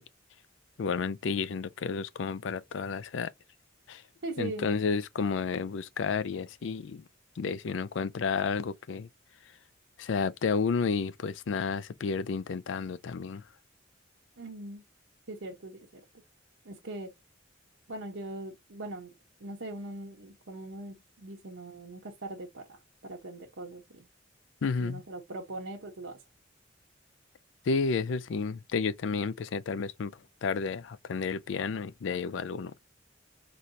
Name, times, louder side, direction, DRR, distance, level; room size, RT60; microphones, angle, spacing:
voice 1, 0.8-3.3 3.9-4.0 4.4-7.0 7.4-9.1 10.0-13.4 24.6-25.0 27.7-30.1 30.4-32.7, left 5 dB, 70° left, 0.4 m, -31 dB
voice 2, 4.2-4.7 14.4-14.8 15.3-16.0 16.6-17.1 17.9-19.1 19.4-24.1 24.8-26.2, right 2 dB, 85° right, 0.9 m, -41 dB
4.2 x 3.1 x 2.6 m
head